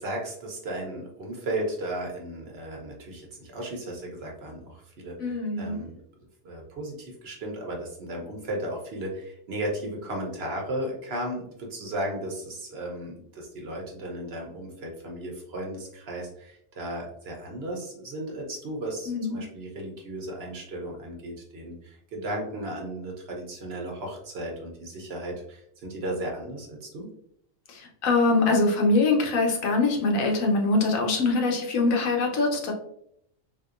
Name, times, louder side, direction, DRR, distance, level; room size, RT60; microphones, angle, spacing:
voice 1, 0.0-5.9 6.4-27.1, right 1 dB, 55° right, 0 dB, 0.9 m, -35 dB
voice 2, 5.2-5.8 19.1-19.4 27.7-32.7, left 3 dB, 80° left, 1 dB, 1.1 m, -23 dB
3.6 x 2.7 x 2.4 m, 0.71 s
omnidirectional pair, 1.4 m